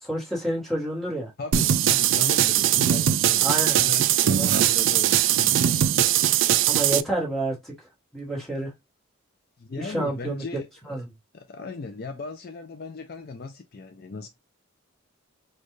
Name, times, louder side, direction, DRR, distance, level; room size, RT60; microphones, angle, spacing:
voice 1, 0.0-1.3 3.4-3.8 4.3-4.5 6.7-7.7 8.1-8.7 9.8-11.1, right 1 dB, ahead, 1.5 m, -29 dB
voice 2, 1.4-5.6 6.0-6.1 9.6-11.0 11.3-14.3, left 3 dB, 45° left, 0.4 m, -37 dB
sound 1, 1.5-7.0, right 11 dB, 60° right, 0.3 m, -21 dB
4.3 x 2.4 x 3.1 m
head